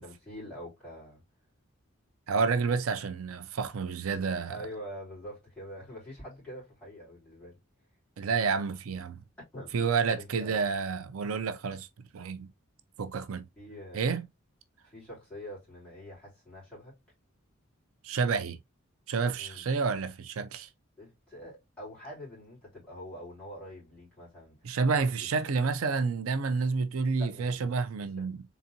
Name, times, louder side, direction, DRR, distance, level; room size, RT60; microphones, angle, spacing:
voice 1, 0.0-1.2 4.5-7.6 9.5-10.6 13.6-14.0 14.8-16.9 19.4-19.6 21.0-24.7 24.9-25.2 27.2-27.8 28.2-28.3, equal, 5° left, 3.0 m, -45 dB
voice 2, 2.3-4.6 8.2-9.2 9.7-11.9 12.1-12.5 13.0-13.4 13.9-14.3 18.0-18.6 19.1-20.7 24.6-28.4, right 5 dB, 85° right, 0.5 m, -29 dB
3.9 x 3.5 x 2.7 m
head